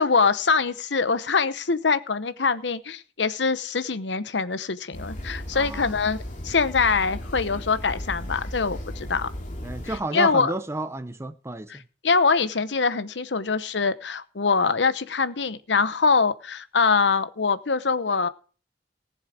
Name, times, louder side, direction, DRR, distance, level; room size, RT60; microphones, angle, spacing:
voice 1, 0.0-9.3 9.8-10.5 11.7-18.3, left 4 dB, 75° left, 0.9 m, -24 dB
sound 1, 4.9-10.0, left 1 dB, 45° left, 2.4 m, -36 dB
voice 2, 5.5-5.9 9.6-11.8, right 2 dB, 15° right, 0.7 m, -32 dB
19.0 x 7.3 x 4.9 m
head